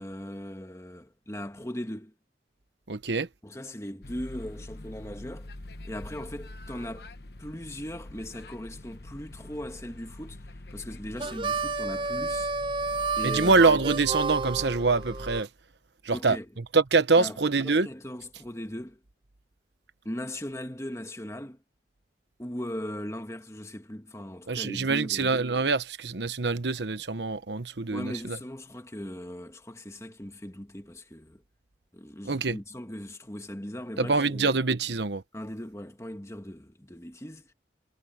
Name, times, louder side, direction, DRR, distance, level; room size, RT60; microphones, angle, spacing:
voice 1, 0.0-2.1 3.4-5.5 5.8-7.1 7.4-12.5 13.2-13.6 16.1-16.5 17.2-19.0 20.0-21.6 22.4-25.3 27.9-31.4 31.9-34.5 35.3-37.5, left 1 dB, 15° left, 1.6 m, -39 dB
voice 2, 2.9-3.3 13.2-15.5 16.0-16.4 16.7-17.9 24.5-28.4 32.2-32.6 34.0-35.2, right 4 dB, 80° right, 1.1 m, -25 dB
sound 1, 4.0-15.4, left 1 dB, 65° left, 1.1 m, -44 dB
Harmonica, 11.2-15.4, right 4 dB, 30° right, 0.5 m, -31 dB
head